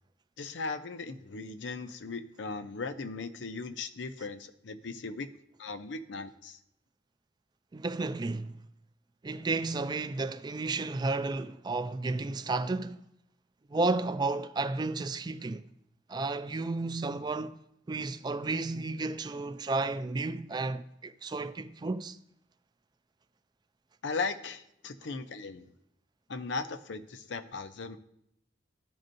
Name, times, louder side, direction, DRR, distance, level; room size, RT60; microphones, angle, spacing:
voice 1, 0.4-5.3 5.6-6.6 24.0-25.7 26.3-28.0, left 4 dB, 80° left, 0.6 m, -37 dB
voice 2, 7.7-8.6 9.2-13.0 13.7-15.6 16.1-17.6 17.9-22.2, right 3 dB, 25° right, 0.3 m, -32 dB
14.0 x 5.3 x 2.6 m
head